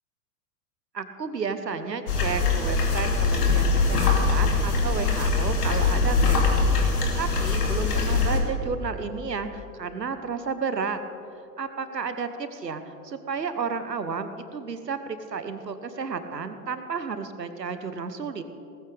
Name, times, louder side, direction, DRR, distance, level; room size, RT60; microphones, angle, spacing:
voice 1, 0.9-11.0 11.6-18.4, right 5 dB, 85° right, 10 dB, 1.1 m, -32 dB
sound 1, 2.1-8.4, left 4 dB, 70° left, 2.8 m, -22 dB
18.5 x 14.5 x 3.5 m, 2.8 s
figure-of-eight pair, 100°, 49 cm